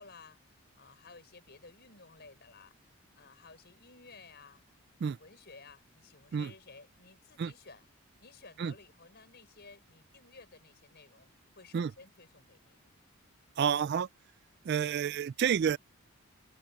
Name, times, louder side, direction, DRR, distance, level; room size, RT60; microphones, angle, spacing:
voice 1, 0.0-4.6 5.0-7.9 8.2-11.3 11.6-12.8, left 4 dB, 50° left, 5.9 m, -55 dB
voice 2, 13.6-14.1 14.7-15.8, right 7 dB, 50° right, 0.3 m, -29 dB
head